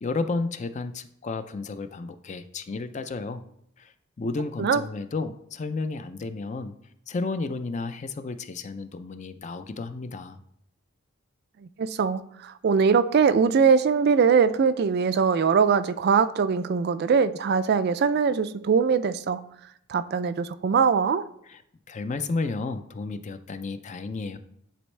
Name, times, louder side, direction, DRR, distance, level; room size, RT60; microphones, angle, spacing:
voice 1, 0.0-3.4 3.8-6.7 7.1-10.4 21.5-21.6 21.9-24.4, left 3 dB, 35° left, 0.4 m, -32 dB
voice 2, 11.8-19.4 19.9-21.2, right 6 dB, 50° right, 0.4 m, -22 dB
10.0 x 4.3 x 3.2 m
head